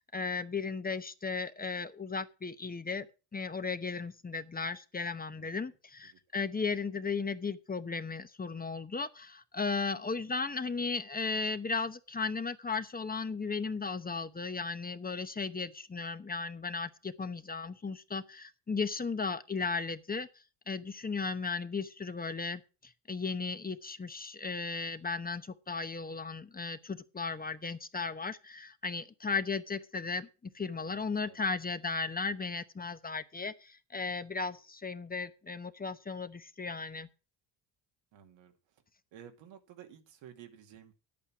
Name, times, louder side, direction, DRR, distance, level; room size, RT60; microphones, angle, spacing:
voice 1, 0.0-3.1 3.3-20.3 20.7-30.3 30.5-37.1, left 4 dB, 20° left, 0.9 m, -36 dB
voice 2, 5.3-5.6 6.0-6.2 30.8-31.4 38.1-38.8 39.1-40.9, right 9 dB, 80° right, 2.3 m, -54 dB
10.0 x 8.7 x 6.0 m
supercardioid pair, 75°, 44 cm